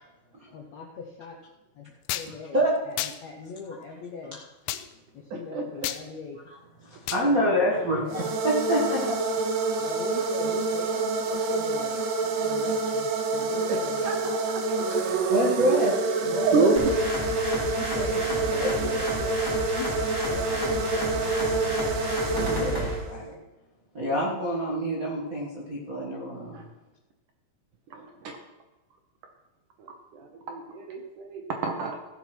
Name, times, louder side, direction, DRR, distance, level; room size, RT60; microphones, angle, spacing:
voice 1, 0.5-1.4 1.7-4.4 5.1-6.4 7.3-8.3 9.6-14.4 17.8-22.1, left 4 dB, 70° left, 2 dB, 1.7 m, -41 dB
sound 1, 2.1-2.3 3.0-3.2 4.7-4.8 5.8-6.0 7.1-7.3, left 13 dB, 85° left, 2.7 m, -30 dB
voice 2, 5.3-5.9 8.5-8.8 13.7-14.9 16.2-16.7 26.5-26.6 27.9-28.4 29.8-32.0, right 4 dB, 65° right, 3 dB, 2.2 m, -29 dB
voice 3, 6.8-9.2 15.3-15.9 16.2-16.9 18.5-19.0 22.3-23.3 23.9-26.6, equal, 40° right, -5 dB, 1.2 m, -27 dB
sound 2, 8.1-23.3, right 3 dB, 85° right, 3.2 m, -27 dB
sound 3, 16.8-23.0, equal, 5° left, 2.5 m, -32 dB
15.0 x 7.2 x 6.0 m, 1.1 s
omnidirectional pair, 4.7 m